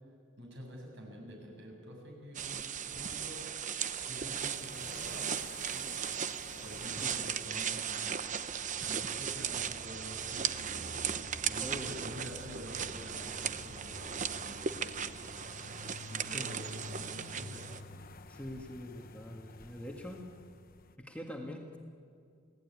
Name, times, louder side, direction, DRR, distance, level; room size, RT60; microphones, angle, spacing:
voice 1, 0.4-3.5 4.0-5.3 5.7-6.0 6.6-8.1 8.8-10.9 11.3-15.2 16.1-17.8, equal, 60° right, 1 dB, 7.6 m, -48 dB
sound 1, 2.3-17.8, right 8 dB, 40° right, 0.8 m, -37 dB
sound 2, 4.4-20.9, left 2 dB, 45° left, 1.0 m, -50 dB
voice 2, 11.6-11.9 16.3-16.5 18.3-20.2 21.0-21.8, left 1 dB, 5° left, 1 dB, 1.8 m, -43 dB
29.0 x 18.0 x 9.7 m, 2.3 s
head